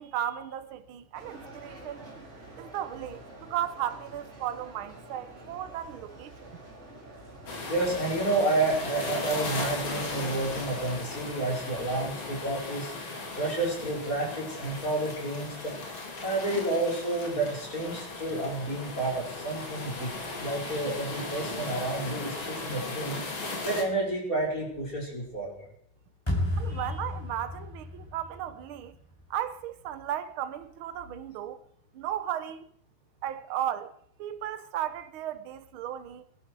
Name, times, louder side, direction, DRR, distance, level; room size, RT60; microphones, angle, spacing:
voice 1, 0.0-2.0 2.6-6.5 26.6-29.0 29.3-31.6 31.9-32.7 33.2-33.9 34.2-36.3, right 11 dB, 75° right, 1.7 m, -35 dB
sound 1, 1.1-12.5, right 2 dB, 30° right, 3.1 m, -48 dB
sound 2, 7.5-23.8, left 3 dB, 70° left, 3.1 m, -37 dB
voice 2, 7.7-12.9 13.4-15.7 16.2-20.1 20.4-25.7 26.7-26.8, right 2 dB, 40° left, 5.5 m, -30 dB
sound 3, 26.3-29.4, left 1 dB, 10° left, 4.5 m, -33 dB
23.0 x 11.5 x 4.7 m
omnidirectional pair, 2.3 m